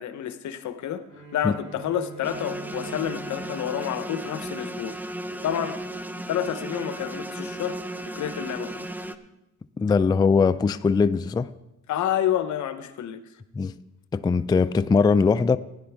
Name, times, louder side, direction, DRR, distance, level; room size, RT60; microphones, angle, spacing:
voice 1, 0.0-5.0 5.4-5.8 6.3-7.8 8.1-8.9 11.9-13.2, left 10 dB, 70° left, 0.9 m, -29 dB
Bowed string instrument, 1.0-5.3, right 4 dB, 65° right, 4.8 m, -45 dB
sound 1, 2.2-9.1, right 1 dB, 5° right, 0.7 m, -35 dB
voice 2, 9.8-11.5 13.6-13.7 14.1-15.6, left 5 dB, 15° left, 0.3 m, -21 dB
16.0 x 9.9 x 3.5 m
cardioid pair, 90°, 30 cm